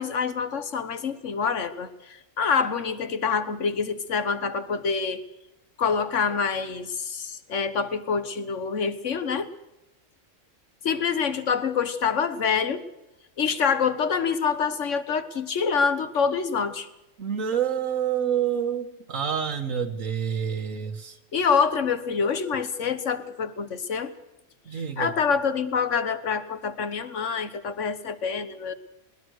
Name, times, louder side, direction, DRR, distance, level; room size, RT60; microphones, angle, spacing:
voice 1, 0.0-5.2 5.8-9.5 10.8-12.8 13.4-16.9 21.3-24.1 25.0-28.7, left 6 dB, 70° left, 11 dB, 1.7 m, -26 dB
voice 2, 17.2-21.2 24.7-25.2, right 8 dB, 85° right, 4 dB, 1.8 m, -28 dB
21.0 x 21.0 x 6.5 m, 0.95 s
omnidirectional pair, 1.3 m